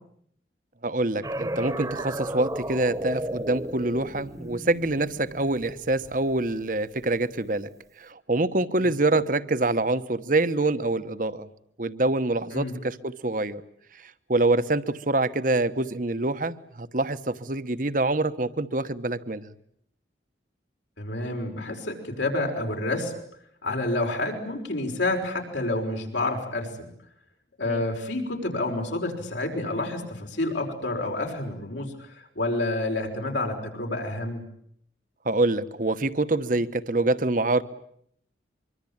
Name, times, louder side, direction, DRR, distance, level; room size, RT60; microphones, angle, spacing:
voice 1, 0.8-7.7 8.0-11.5 11.8-13.6 14.3-19.5 27.7-27.8 35.2-37.6, right 2 dB, 45° right, 12 dB, 1.1 m, -25 dB
sound 1, 1.2-6.5, right 1 dB, 20° right, 1.3 m, -34 dB
voice 2, 21.0-23.1 23.6-26.9 27.6-34.4, left 2 dB, 80° left, 2 dB, 5.5 m, -29 dB
24.5 x 24.5 x 8.7 m, 0.68 s
head